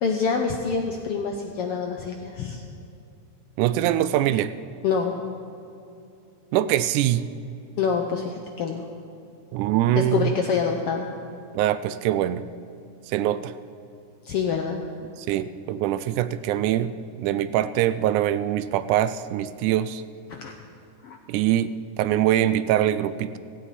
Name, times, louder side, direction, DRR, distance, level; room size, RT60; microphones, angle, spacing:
voice 1, 0.0-2.6 4.8-5.1 7.8-8.9 10.0-11.1 14.2-14.8 20.3-20.5 21.0-21.2, left 5 dB, 70° left, 3 dB, 1.4 m, -26 dB
voice 2, 3.6-4.5 6.5-7.3 9.5-10.3 11.5-12.4 13.1-13.5 15.2-20.0 21.3-23.4, right 12 dB, 85° right, 14 dB, 2.0 m, -23 dB
16.5 x 16.0 x 4.2 m, 2.6 s
omnidirectional pair, 3.5 m